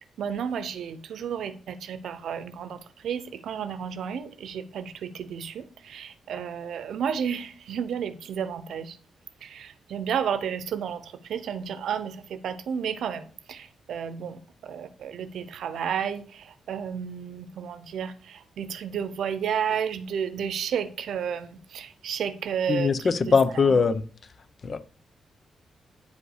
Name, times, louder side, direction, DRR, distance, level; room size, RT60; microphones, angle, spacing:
voice 1, 0.2-9.0 9.4-23.3 23.7-23.8, right 8 dB, 80° right, 0.9 m, -32 dB
voice 2, 22.7-24.0 24.6-24.8, left 5 dB, 40° left, 0.7 m, -21 dB
9.7 x 5.2 x 4.8 m
wide cardioid pair, 135°, 0 cm